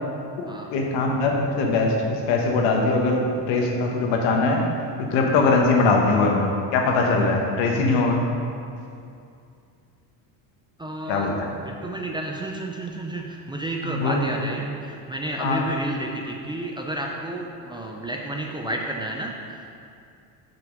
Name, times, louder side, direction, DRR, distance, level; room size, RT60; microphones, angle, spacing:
voice 1, 0.4-4.6 5.0-8.2 11.1-11.3 13.8-14.2 15.4-15.7, left 3 dB, 75° left, 1 dB, 1.3 m, -21 dB
voice 2, 10.8-11.3 11.6-19.8, right 1 dB, 10° right, 0 dB, 0.4 m, -31 dB
6.1 x 5.6 x 5.2 m, 2.5 s
cardioid pair, 120°, 45 cm